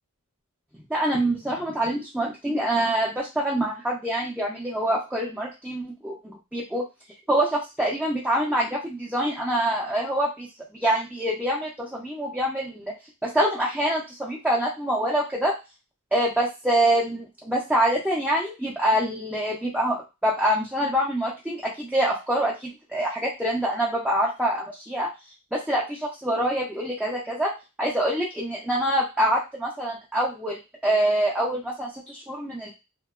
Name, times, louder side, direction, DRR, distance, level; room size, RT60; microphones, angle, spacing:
voice 1, 0.9-6.9 7.3-10.5 10.8-12.9 13.2-15.5 16.1-25.1 25.5-27.5 27.8-32.7, right 1 dB, 5° right, -4 dB, 0.4 m, -25 dB
2.7 x 2.2 x 2.2 m, 0.26 s
head